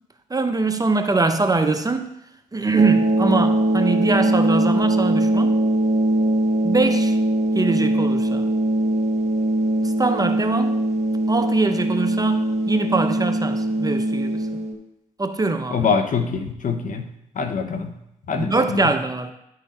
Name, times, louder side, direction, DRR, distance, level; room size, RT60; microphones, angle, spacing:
voice 1, 0.3-2.2 2.5-5.6 6.6-7.2 7.5-8.5 9.8-10.8 11.3-14.6 15.2-15.9 18.4-19.3, right 3 dB, 25° right, 7 dB, 0.8 m, -23 dB
sound 1, 2.8-14.7, right 1 dB, 45° right, 1.4 m, -21 dB
voice 2, 15.7-17.1 17.3-17.9 18.3-18.9, left 5 dB, 55° left, 7 dB, 0.9 m, -24 dB
10.5 x 3.9 x 4.3 m, 0.81 s
supercardioid pair, 50°, 16 cm